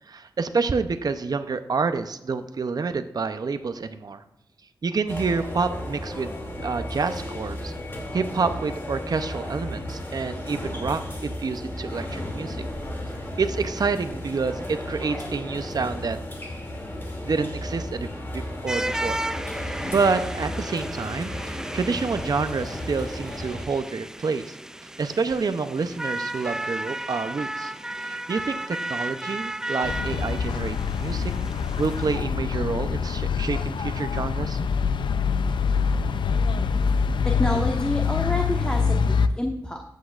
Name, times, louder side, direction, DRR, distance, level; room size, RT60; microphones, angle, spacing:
voice 1, 0.1-4.2 4.8-6.3 6.6-7.7 8.1-12.6 13.4-16.2 17.2-19.2 19.6-24.6 25.0-27.7 28.1-31.3 31.8-34.6, right 4 dB, 55° right, 9 dB, 0.6 m, -28 dB
sound 1, 5.1-23.6, left 1 dB, 30° left, 2.5 m, -34 dB
sound 2, 18.7-32.2, right 1 dB, 5° right, 0.3 m, -34 dB
sound 3, 29.8-39.3, left 5 dB, 90° left, 0.5 m, -25 dB
voice 2, 37.2-39.8, left 1 dB, 10° left, 2 dB, 1.1 m, -28 dB
14.5 x 8.3 x 2.4 m, 0.88 s
cardioid pair, 70°, 8 cm